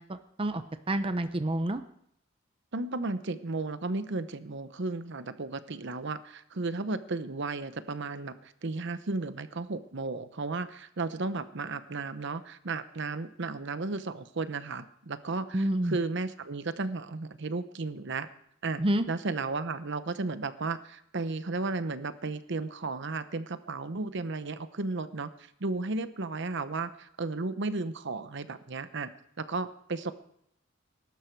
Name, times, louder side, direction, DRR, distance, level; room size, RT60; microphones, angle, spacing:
voice 1, 0.0-1.8 15.5-16.0 18.8-19.0, right 1 dB, 25° right, 10 dB, 0.7 m, -29 dB
voice 2, 2.7-18.3 18.6-18.8 19.1-25.3 25.6-29.1 29.4-30.1, right 3 dB, 60° right, 12 dB, 0.9 m, -34 dB
20.0 x 12.0 x 4.6 m, 0.72 s
head